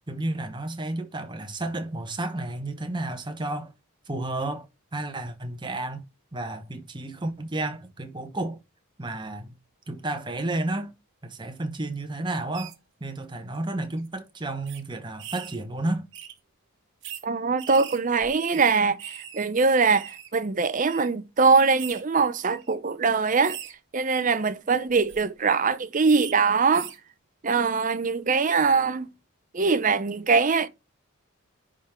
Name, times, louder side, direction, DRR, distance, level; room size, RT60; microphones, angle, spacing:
voice 1, 0.1-3.7 4.1-4.7 4.9-6.0 6.3-8.6 9.0-9.5 9.9-10.9 11.2-12.7 13.0-16.1, right 2 dB, 20° right, 1.0 m, -31 dB
sound 1, 12.5-12.7 13.5-13.7 14.0-14.1 14.7-14.8 15.2-15.6 16.1-16.3 17.0-17.2 17.6-19.4 19.7-20.3 20.9-21.1 21.8-22.0 22.6-22.7 23.4-23.7 24.9-25.2 26.1-26.3 26.7-27.0, right 10 dB, 55° right, 1.3 m, -40 dB
voice 2, 17.2-23.6 23.9-26.9 27.4-29.1 29.5-30.7, right 4 dB, 35° right, 0.5 m, -22 dB
10.5 x 3.8 x 4.3 m
head